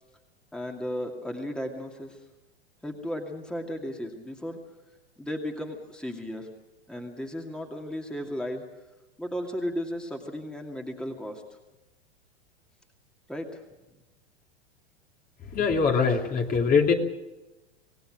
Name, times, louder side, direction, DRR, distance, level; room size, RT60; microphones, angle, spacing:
voice 1, 0.5-2.2 2.8-4.6 5.2-6.5 6.9-8.6 9.2-11.4 13.3-13.6, equal, 5° left, 2 dB, 2.4 m, -35 dB
voice 2, 15.5-16.9, left 5 dB, 25° left, 2 dB, 2.7 m, -22 dB
26.5 x 18.5 x 6.3 m, 1.0 s
figure-of-eight pair, 95°, 33 cm